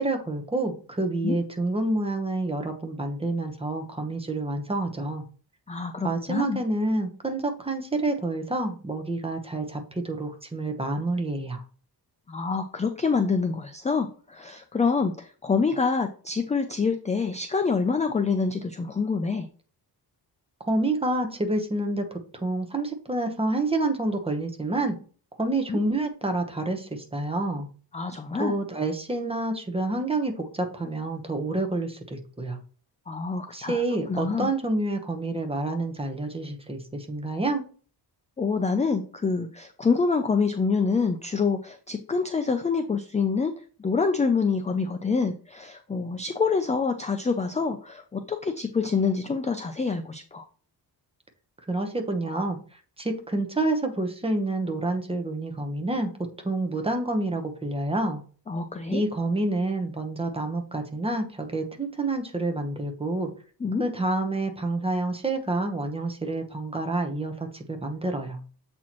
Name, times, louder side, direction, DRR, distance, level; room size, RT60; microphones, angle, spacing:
voice 1, 0.0-5.2 6.0-11.6 20.6-25.0 25.4-27.7 28.4-32.6 33.5-37.6 51.7-56.1 56.4-58.2 58.9-63.3 63.8-68.4, right 2 dB, 15° right, 5 dB, 0.9 m, -28 dB
voice 2, 5.7-6.6 12.3-19.5 25.7-25.8 27.9-28.5 33.1-33.8 34.1-34.5 38.4-43.5 43.8-50.4 58.5-59.0 63.6-63.8, left 5 dB, 20° left, 7 dB, 0.4 m, -26 dB
7.4 x 4.3 x 3.0 m, 0.40 s
wide cardioid pair, 150°, 42 cm